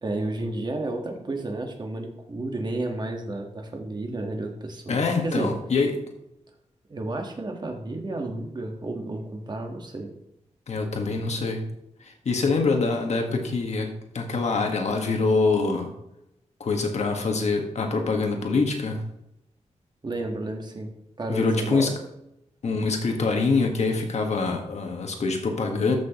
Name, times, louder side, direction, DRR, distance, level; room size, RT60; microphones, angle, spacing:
voice 1, 0.0-5.5 6.9-10.1 20.0-21.9, right 2 dB, 35° right, 3 dB, 1.5 m, -32 dB
voice 2, 4.9-6.0 10.7-11.6 12.2-15.9 16.6-19.0 21.3-21.9 22.6-26.0, left 3 dB, 70° left, 3 dB, 1.6 m, -25 dB
13.5 x 6.3 x 3.0 m, 0.84 s
wide cardioid pair, 165°, 12 cm